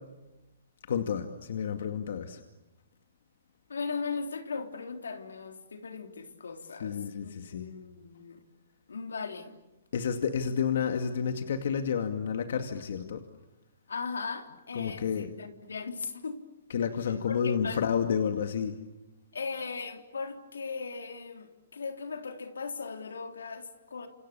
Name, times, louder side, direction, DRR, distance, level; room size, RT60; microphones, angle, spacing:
voice 1, 0.9-2.4 6.8-7.7 9.9-13.2 14.7-15.3 16.7-18.8, left 7 dB, 65° left, 6 dB, 2.3 m, -30 dB
voice 2, 3.7-8.4 8.9-9.6 13.9-16.4 17.3-17.8 19.3-24.1, left 5 dB, 90° left, 5 dB, 3.6 m, -38 dB
29.5 x 28.0 x 7.1 m, 1.0 s
hypercardioid pair, 145°, 0 cm